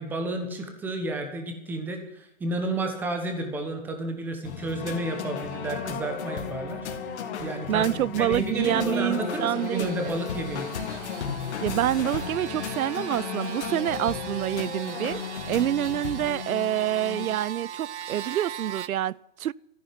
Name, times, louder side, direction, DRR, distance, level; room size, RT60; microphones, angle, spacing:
voice 1, 0.0-10.7, right 2 dB, 5° right, 1.1 m, -31 dB
sound 1, 4.4-16.3, left 6 dB, 55° left, 2.2 m, -36 dB
sound 2, 4.8-17.3, left 7 dB, 35° left, 2.4 m, -39 dB
voice 2, 7.7-10.2 11.6-15.2 15.5-19.5, right 12 dB, 85° right, 0.6 m, -27 dB
sound 3, 9.0-18.9, right 9 dB, 55° right, 0.9 m, -40 dB
14.0 x 10.5 x 9.3 m
hypercardioid pair, 170°, 41 cm